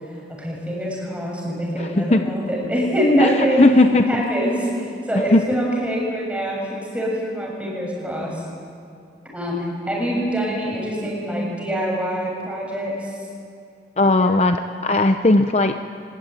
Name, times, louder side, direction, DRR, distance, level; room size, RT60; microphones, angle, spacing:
voice 1, 0.3-3.7 4.1-8.4 9.3-13.1 14.0-14.4, equal, 5° right, -2 dB, 7.4 m, -24 dB
voice 2, 1.8-2.2 3.2-4.2 5.3-5.4 14.0-15.7, left 2 dB, 35° left, 7 dB, 0.7 m, -17 dB
25.0 x 20.5 x 9.5 m, 2.3 s
head